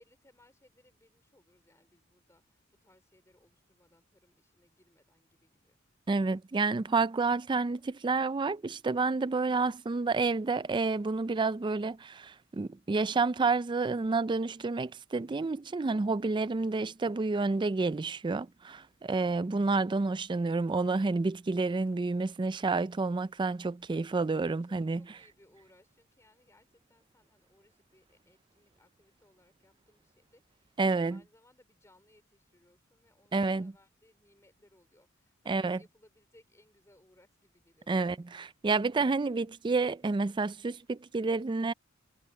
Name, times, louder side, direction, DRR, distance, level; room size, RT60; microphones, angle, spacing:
voice 1, 0.0-5.8 23.8-24.1 24.6-38.8, left 1 dB, 15° left, 4.0 m, -65 dB
voice 2, 6.1-25.0 30.8-31.2 33.3-33.7 35.5-35.8 37.9-41.7, right 3 dB, 25° right, 0.4 m, -29 dB
head